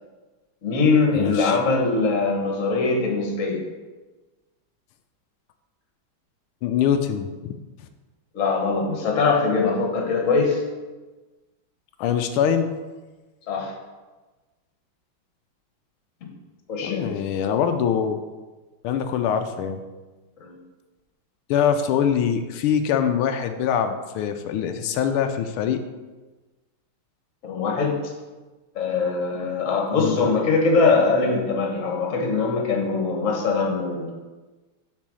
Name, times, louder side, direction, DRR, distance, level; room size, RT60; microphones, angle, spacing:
voice 1, 0.6-3.6 8.3-10.6 13.5-13.7 16.7-17.1 20.4-20.6 27.4-28.1 28.7-34.1, left 4 dB, 40° left, 1 dB, 1.5 m, -22 dB
voice 2, 1.1-1.6 6.6-7.6 12.0-12.7 16.8-18.2 18.8-19.8 21.5-25.8 30.0-30.3, left 8 dB, 85° left, 7 dB, 1.5 m, -23 dB
7.4 x 4.4 x 6.2 m, 1.2 s
omnidirectional pair, 2.3 m